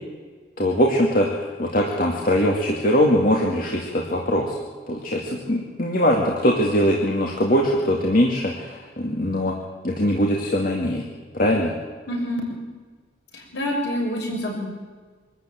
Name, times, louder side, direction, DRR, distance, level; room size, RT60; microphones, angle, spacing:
voice 1, 0.6-4.6 4.9-9.5 9.8-11.0 11.3-11.7, equal, 45° left, -1 dB, 2.4 m, -21 dB
voice 2, 12.1-12.5 13.3-14.6, equal, 65° left, -1 dB, 7.0 m, -27 dB
24.5 x 13.5 x 9.2 m, 1.5 s
head